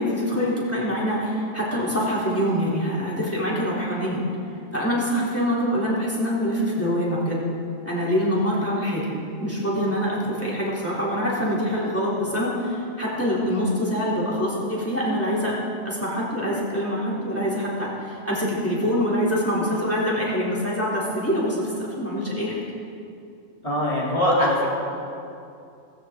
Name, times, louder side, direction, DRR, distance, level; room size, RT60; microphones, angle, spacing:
voice 1, 0.0-4.2 4.7-7.4 7.8-9.1 9.4-15.5 15.8-22.6, equal, 10° left, -6 dB, 3.5 m, -25 dB
voice 2, 23.6-24.7, left 1 dB, 25° left, -7 dB, 3.7 m, -21 dB
18.0 x 16.0 x 3.9 m, 2.5 s
omnidirectional pair, 1.3 m